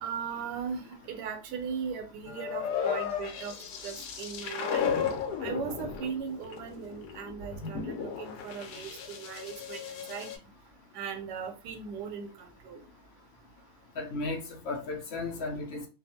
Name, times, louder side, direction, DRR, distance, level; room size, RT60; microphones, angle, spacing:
voice 1, 0.0-4.9 5.4-10.3 10.9-12.8, right 6 dB, 85° right, 1.2 m, -38 dB
sound 1, 2.3-10.4, left 7 dB, 80° left, 1.2 m, -35 dB
voice 2, 14.0-15.9, left 3 dB, 60° left, 0.7 m, -35 dB
2.6 x 2.4 x 2.7 m
omnidirectional pair, 1.7 m